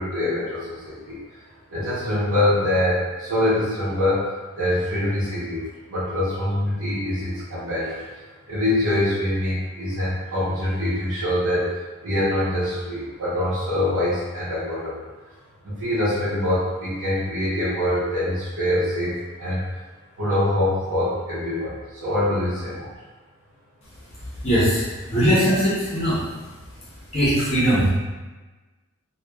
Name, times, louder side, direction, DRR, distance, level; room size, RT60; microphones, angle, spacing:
voice 1, 0.0-1.4 1.7-4.3 4.6-5.6 5.9-11.7 12.0-15.1 15.6-19.6 20.2-22.9, left 1 dB, 80° right, -13 dB, 0.8 m, -24 dB
voice 2, 24.4-26.2 27.1-27.9, equal, 30° left, -9 dB, 0.7 m, -20 dB
2.9 x 2.2 x 2.2 m, 1.2 s
head